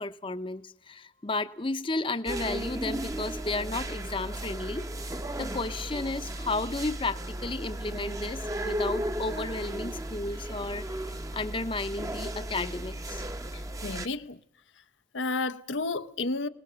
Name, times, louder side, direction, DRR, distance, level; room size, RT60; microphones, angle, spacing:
voice 1, 0.0-10.9 11.3-13.2, left 2 dB, 25° left, 0.8 m, -33 dB
sound 1, 2.3-14.1, right 1 dB, 20° right, 0.8 m, -35 dB
voice 2, 13.5-14.4 15.1-16.5, left 3 dB, 85° left, 0.9 m, -32 dB
28.5 x 19.5 x 6.9 m
head